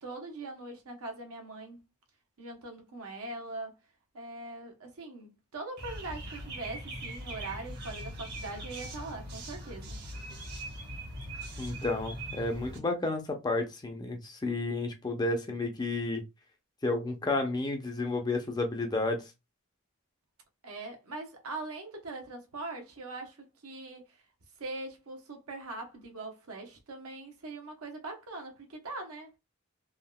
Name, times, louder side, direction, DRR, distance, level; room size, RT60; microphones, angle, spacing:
voice 1, 0.0-1.8 2.4-3.7 4.1-10.0 20.6-23.4 23.6-24.2 24.6-29.3, right 2 dB, 80° right, 0.8 m, -41 dB
sound 1, 5.8-12.8, right 1 dB, 45° right, 0.9 m, -41 dB
voice 2, 11.6-16.2 16.8-19.2, left 2 dB, 20° left, 0.5 m, -31 dB
3.5 x 2.3 x 2.2 m
head